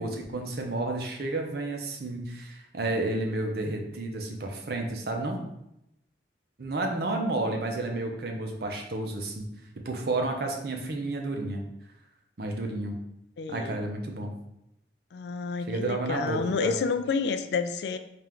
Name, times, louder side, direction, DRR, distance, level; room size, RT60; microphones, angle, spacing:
voice 1, 0.0-5.4 6.6-9.5 9.8-11.6 12.4-12.9 13.5-14.3 15.7-16.7, right 2 dB, 55° right, 2 dB, 0.6 m, -31 dB
voice 2, 13.4-13.8 15.1-18.0, left 5 dB, 65° left, 9 dB, 0.3 m, -29 dB
4.3 x 2.5 x 3.5 m, 0.82 s
head